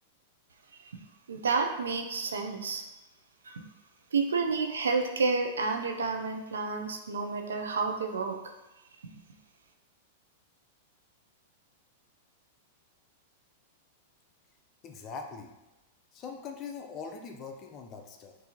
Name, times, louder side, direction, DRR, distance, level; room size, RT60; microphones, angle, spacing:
voice 1, 1.3-2.8 3.4-3.6 4.1-8.4 9.0-9.1, right 4 dB, 90° right, 4 dB, 0.5 m, -30 dB
voice 2, 14.8-15.5 16.1-18.4, left 5 dB, 35° left, 3 dB, 0.6 m, -42 dB
6.1 x 2.7 x 2.9 m, 1.0 s
hypercardioid pair, 115°, 0 cm